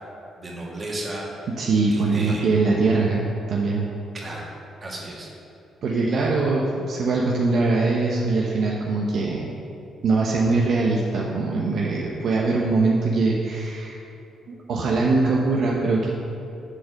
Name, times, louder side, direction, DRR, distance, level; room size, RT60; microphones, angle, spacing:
voice 1, 0.4-1.5 1.9-2.5 4.1-4.5 4.8-5.3, right 1 dB, 35° right, -3 dB, 1.9 m, -34 dB
voice 2, 1.6-3.2 3.5-3.9 5.8-9.5 10.0-14.0 14.5-16.1, right 3 dB, 65° right, -2 dB, 0.8 m, -22 dB
7.5 x 4.2 x 6.4 m, 2.7 s
cardioid pair, 90°, 0 cm